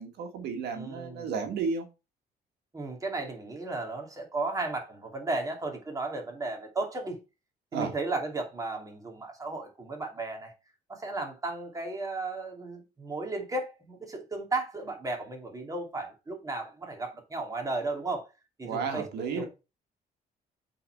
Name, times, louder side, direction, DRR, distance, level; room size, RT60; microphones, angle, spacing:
voice 1, 0.0-1.9 7.7-7.9 18.6-19.5, right 5 dB, 85° right, 1.7 m, -32 dB
voice 2, 0.7-1.3 2.7-7.2 7.7-10.5 10.9-18.3 18.6-19.0 19.3-19.5, right 3 dB, 20° right, 2.6 m, -34 dB
7.8 x 4.3 x 4.7 m
cardioid pair, 110°, 17 cm